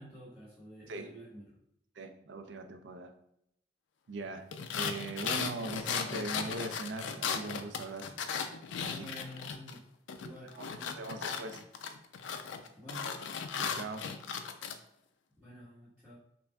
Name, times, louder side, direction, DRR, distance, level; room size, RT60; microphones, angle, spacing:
voice 1, 0.0-1.5 8.9-9.8 10.1-11.5 12.8-13.1 15.4-16.2, equal, ahead, -14 dB, 1.3 m, -50 dB
voice 2, 2.0-3.1 4.1-4.5 4.7-8.1 8.8-9.1 10.4-11.6 13.6-14.0, right 2 dB, 80° right, 7 dB, 0.5 m, -41 dB
sound 1, 4.5-9.8 10.1-14.8, left 6 dB, 90° left, 0.4 m, -37 dB
5.8 x 2.5 x 2.3 m, 0.78 s
head